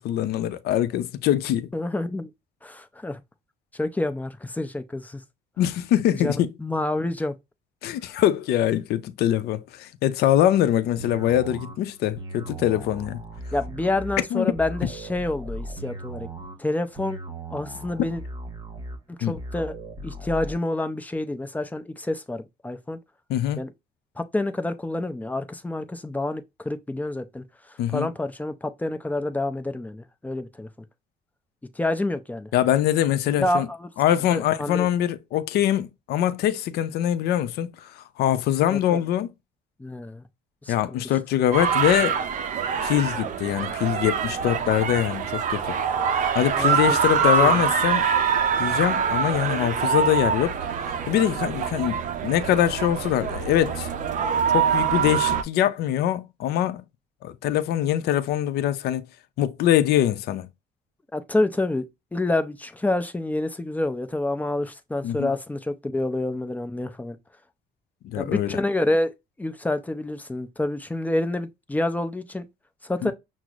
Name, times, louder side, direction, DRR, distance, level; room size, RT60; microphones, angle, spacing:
voice 1, 0.0-1.7 5.6-6.5 7.8-13.2 14.3-14.5 19.2-19.3 23.3-23.6 27.8-28.1 32.5-33.7 34.0-39.3 40.7-42.2 42.8-45.8 46.3-48.1 48.6-50.6 51.1-53.9 54.5-56.8 57.2-59.1 59.4-60.5 65.0-65.3 68.0-68.6 73.0-73.1, left 11 dB, 70° left, 0.5 m, -23 dB
voice 2, 1.7-2.3 2.6-3.2 3.7-5.2 6.1-7.4 13.5-16.3 16.6-17.2 17.5-18.2 19.1-19.8 20.0-23.0 23.6-23.7 24.2-30.7 31.7-32.5 33.3-33.9 34.3-34.9 38.7-39.0 39.8-40.2 40.6-41.0 46.6-47.0 47.4-47.6 61.1-67.2 68.2-69.1 69.4-72.4 72.8-73.1, left 2 dB, 10° left, 0.5 m, -28 dB
sound 1, 11.0-20.6, right 1 dB, 30° right, 1.0 m, -38 dB
sound 2, 41.5-55.4, right 7 dB, 50° right, 0.5 m, -24 dB
5.9 x 2.0 x 2.4 m
cardioid pair, 110°, 17 cm